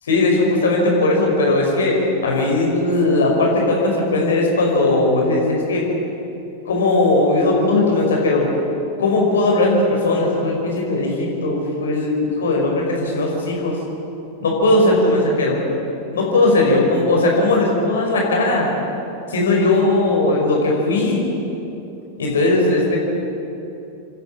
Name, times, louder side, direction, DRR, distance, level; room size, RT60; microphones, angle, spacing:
voice 1, 0.1-2.0 2.2-5.8 6.7-8.5 9.0-13.8 14.4-15.6 16.1-18.7 19.3-21.2 22.2-23.0, left 2 dB, 65° left, -1 dB, 5.4 m, -18 dB
27.5 x 11.5 x 9.3 m, 2.9 s
figure-of-eight pair, 90°, 0 cm